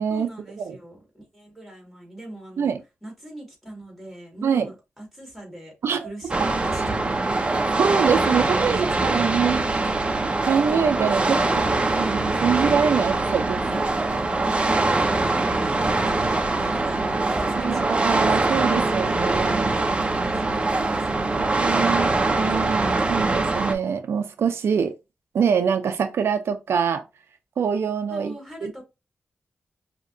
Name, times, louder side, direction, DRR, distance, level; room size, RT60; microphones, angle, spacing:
voice 1, 0.1-2.7 3.0-5.7 6.0-7.1 8.1-9.1 9.6-10.1 11.2-11.9 13.7-14.0 14.4-17.9 19.1-23.0 28.1-28.8, right 1 dB, ahead, 2.2 m, -40 dB
sound 1, 6.3-23.7, right 2 dB, 25° right, 0.6 m, -23 dB
voice 2, 7.8-9.6 10.4-11.6 12.0-13.6 17.6-19.7 21.4-24.9 25.3-27.0 27.6-28.8, right 7 dB, 90° right, 0.5 m, -24 dB
5.3 x 2.8 x 2.6 m
wide cardioid pair, 110°, 4 cm